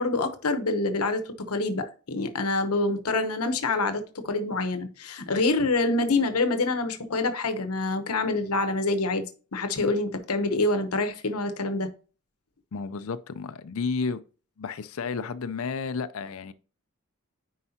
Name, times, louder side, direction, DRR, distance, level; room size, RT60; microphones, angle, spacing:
voice 1, 0.0-9.2 9.5-11.9, left 2 dB, 90° left, 1.0 m, -26 dB
voice 2, 12.7-14.2 14.6-16.5, left 5 dB, 70° left, 0.5 m, -32 dB
9.7 x 4.7 x 2.8 m
head